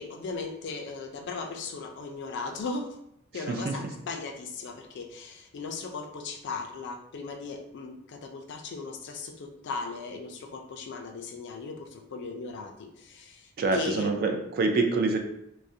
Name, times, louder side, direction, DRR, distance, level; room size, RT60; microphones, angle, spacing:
voice 1, 0.0-3.0 3.3-14.4, left 4 dB, 60° left, 3 dB, 0.4 m, -37 dB
voice 2, 13.6-15.2, right 3 dB, 45° right, 3 dB, 0.3 m, -26 dB
2.3 x 2.1 x 2.6 m, 0.77 s
head